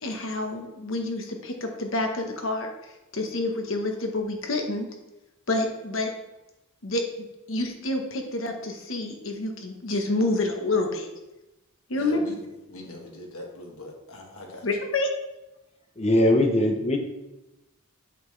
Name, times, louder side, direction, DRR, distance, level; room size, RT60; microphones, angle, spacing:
voice 1, 0.0-2.7 3.1-4.9 5.5-6.1 6.8-7.0 7.5-11.1 11.9-12.2 14.6-15.1, left 2 dB, 65° left, 3 dB, 1.1 m, -28 dB
voice 2, 11.9-12.4 12.7-14.7, left 1 dB, 85° left, 1 dB, 1.4 m, -41 dB
voice 3, 16.0-17.0, left 1 dB, 30° left, 4 dB, 0.8 m, -20 dB
8.1 x 5.8 x 3.2 m, 0.99 s
head